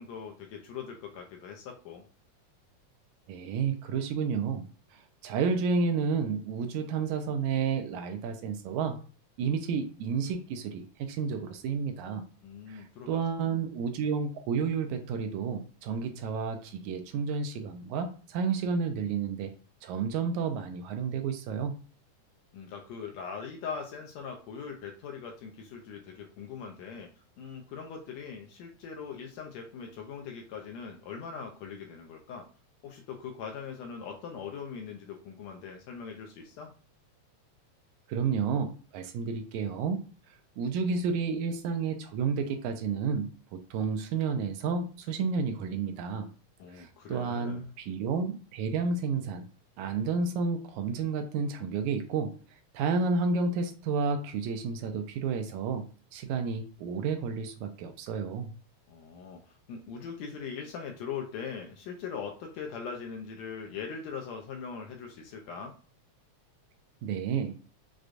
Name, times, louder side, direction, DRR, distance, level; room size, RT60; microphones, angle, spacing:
voice 1, 0.0-2.0 12.4-13.2 22.5-27.1 27.4-32.5 32.8-36.7 46.6-47.7 58.9-65.8, left 6 dB, 75° left, 2 dB, 1.7 m, -41 dB
voice 2, 3.3-4.6 4.9-9.0 9.4-12.3 12.7-19.5 19.8-21.7 38.1-40.0 40.6-46.3 46.7-49.5 49.8-52.4 52.7-55.8 56.1-58.5 67.0-67.6, right 5 dB, 80° right, 6 dB, 1.9 m, -31 dB
6.2 x 2.2 x 2.5 m, 0.38 s
omnidirectional pair, 3.4 m